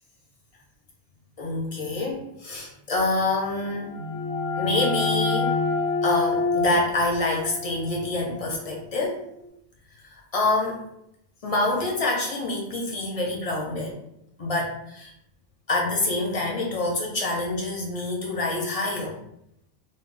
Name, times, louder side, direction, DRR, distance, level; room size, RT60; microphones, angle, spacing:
voice 1, 1.4-3.9 4.6-5.5 6.0-9.2 10.1-10.8 11.4-14.0 14.4-15.1 15.7-19.2, left 2 dB, 50° left, -1 dB, 0.4 m, -26 dB
sound 1, 3.6-9.1, left 3 dB, 90° left, 0.9 m, -28 dB
2.2 x 2.0 x 3.7 m, 0.79 s
omnidirectional pair, 1.1 m